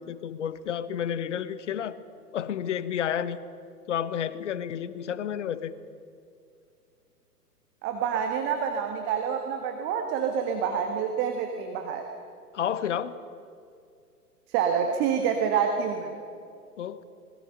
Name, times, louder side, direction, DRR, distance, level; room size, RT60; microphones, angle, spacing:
voice 1, 0.0-2.0 2.3-3.4 3.9-5.7 12.5-13.1 16.8-17.0, left 9 dB, 50° left, 15 dB, 1.1 m, -31 dB
voice 2, 7.8-12.1 14.5-16.1, right 7 dB, 25° right, 5 dB, 1.6 m, -27 dB
26.5 x 21.0 x 5.5 m, 2.5 s
figure-of-eight pair, 115°, 47 cm